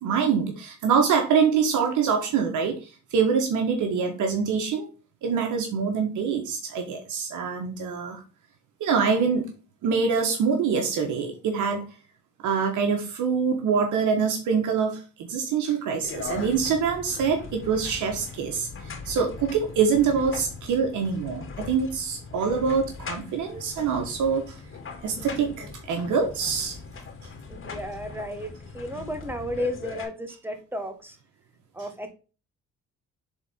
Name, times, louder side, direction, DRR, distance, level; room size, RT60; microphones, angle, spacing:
voice 1, 0.0-4.9 5.2-8.2 8.8-9.5 9.8-11.9 12.4-24.6 25.0-26.8, right 6 dB, 80° right, 3 dB, 1.5 m, -25 dB
sound 1, 16.0-30.0, left 4 dB, 45° left, 2.4 m, -40 dB
voice 2, 25.1-25.7 27.5-31.2 31.7-32.1, equal, 5° right, 6 dB, 1.6 m, -34 dB
7.1 x 4.1 x 3.7 m, 0.34 s
cardioid pair, 90°, 30 cm